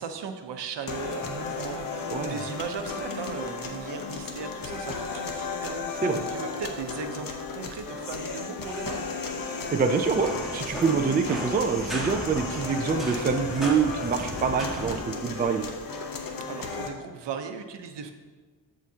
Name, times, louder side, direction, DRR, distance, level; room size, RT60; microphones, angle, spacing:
voice 1, 0.0-5.9 6.3-9.1 16.4-18.1, right 6 dB, 65° right, 6 dB, 0.9 m, -37 dB
sound 1, 0.9-16.9, left 4 dB, 45° left, 1.0 m, -34 dB
voice 2, 9.7-15.7, right 5 dB, 20° right, 6 dB, 0.4 m, -26 dB
sound 2, 9.8-15.0, equal, ahead, 1.6 m, -36 dB
13.5 x 5.0 x 2.8 m, 1.3 s
cardioid pair, 115°, 46 cm